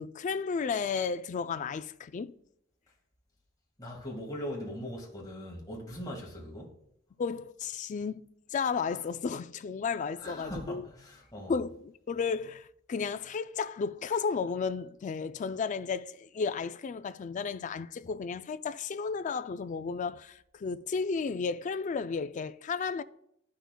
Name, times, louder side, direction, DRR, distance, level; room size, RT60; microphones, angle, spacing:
voice 1, 0.0-2.3 7.2-8.2 8.5-10.8 11.5-23.0, left 5 dB, 35° left, 0.3 m, -33 dB
voice 2, 3.8-6.7 10.2-11.5, equal, 20° left, 1.8 m, -40 dB
12.5 x 5.7 x 2.2 m
head